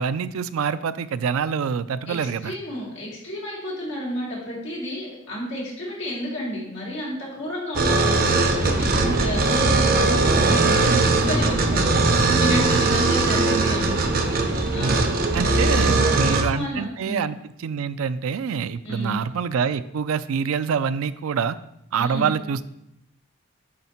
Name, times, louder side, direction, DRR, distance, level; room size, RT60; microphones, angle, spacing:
voice 1, 0.0-2.5 10.6-11.3 12.7-12.8 14.8-15.0 15.3-21.6 21.9-22.7, right 6 dB, 80° right, 14 dB, 0.4 m, -26 dB
voice 2, 2.1-8.2 8.6-11.9 12.3-17.3 18.8-19.2 22.0-22.3, equal, 55° left, -5 dB, 2.9 m, -31 dB
sound 1, 7.8-16.4, right 3 dB, 45° right, 0.7 m, -20 dB
9.7 x 3.5 x 4.3 m, 0.81 s
head